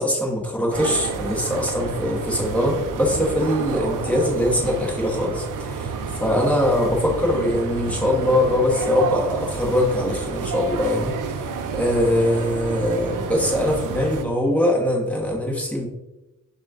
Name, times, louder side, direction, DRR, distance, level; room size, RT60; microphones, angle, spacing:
voice 1, 0.0-15.8, left 1 dB, 5° left, -3 dB, 1.0 m, -22 dB
sound 1, 0.7-14.2, right 5 dB, 70° right, 0.5 m, -30 dB
5.4 x 2.4 x 2.4 m, 0.97 s
cardioid pair, 80°, 33 cm